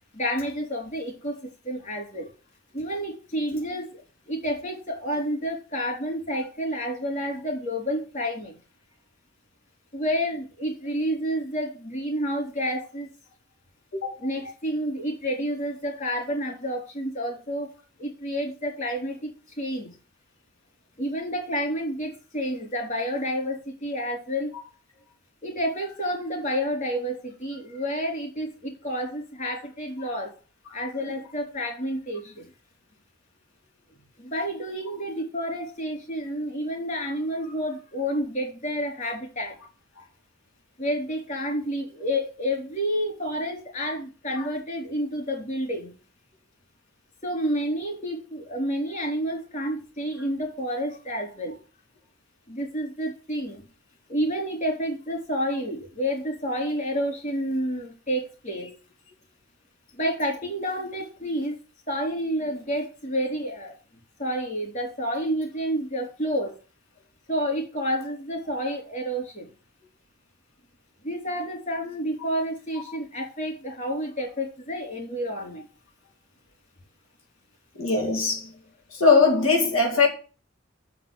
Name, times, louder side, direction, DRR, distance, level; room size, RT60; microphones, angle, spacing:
voice 1, 0.1-2.3 2.7-4.0 4.3-8.6 9.9-13.1 14.2-17.7 18.0-19.9 21.0-24.5 25.4-30.3 30.7-32.4 34.2-39.5 40.8-45.9 47.2-51.6 52.5-53.7 54.1-58.7 60.0-61.6 61.9-63.7 64.2-66.5 67.3-69.5 71.0-75.7, equal, 40° left, 3.7 m, -29 dB
voice 2, 77.8-78.5 78.9-80.1, left 4 dB, 85° left, 2.3 m, -21 dB
6.8 x 5.9 x 7.1 m
head